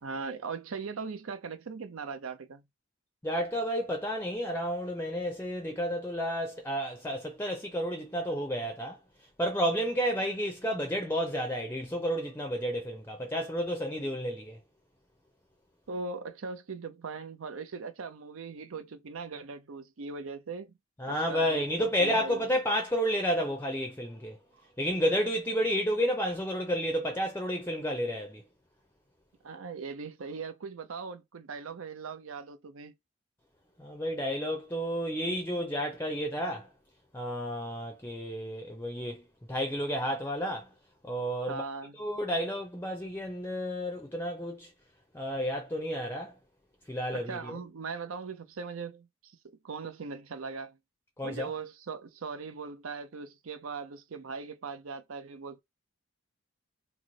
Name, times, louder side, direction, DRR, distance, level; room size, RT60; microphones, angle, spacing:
voice 1, 0.0-2.6 15.9-20.7 21.1-22.5 29.4-32.9 41.5-41.9 47.1-49.4 49.6-50.8 51.2-55.6, right 4 dB, 80° right, 0.6 m, -39 dB
voice 2, 3.2-9.0 9.4-14.6 21.0-24.4 24.8-28.4 33.8-36.7 37.1-39.2 39.5-40.7 41.0-41.6 42.0-44.7 45.1-46.3 46.9-47.6 51.2-51.5, equal, 10° left, 0.5 m, -31 dB
3.0 x 2.0 x 3.9 m
head